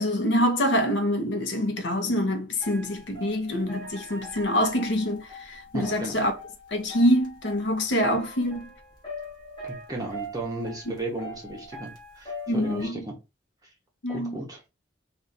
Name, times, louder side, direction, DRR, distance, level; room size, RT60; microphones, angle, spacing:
voice 1, 0.0-6.3 6.7-8.7 12.5-13.0 14.0-14.4, equal, 75° left, 0.7 m, -25 dB
sound 1, 2.6-12.9, equal, 20° left, 1.2 m, -42 dB
voice 2, 5.7-6.2 9.6-13.1 14.1-14.6, right 2 dB, 20° right, 0.7 m, -35 dB
2.5 x 2.3 x 3.9 m
head